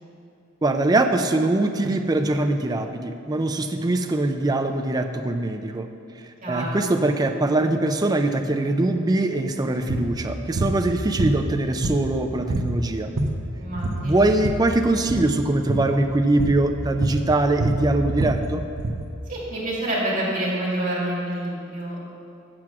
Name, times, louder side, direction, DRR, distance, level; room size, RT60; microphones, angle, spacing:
voice 1, 0.6-5.9 6.5-13.1 14.0-18.6, right 2 dB, 15° right, 6 dB, 0.4 m, -22 dB
voice 2, 6.4-6.8 13.5-14.3 19.3-22.0, right 1 dB, 40° right, -6 dB, 2.2 m, -27 dB
sound 1, 9.9-10.1 10.6-10.8 11.2-12.2 12.5-12.7 13.0-13.5 13.8-14.7 15.0-15.3 15.7-15.9 16.4-16.6 17.0-19.0, right 2 dB, 60° right, 0.7 m, -26 dB
7.7 x 6.1 x 6.0 m, 2.6 s
head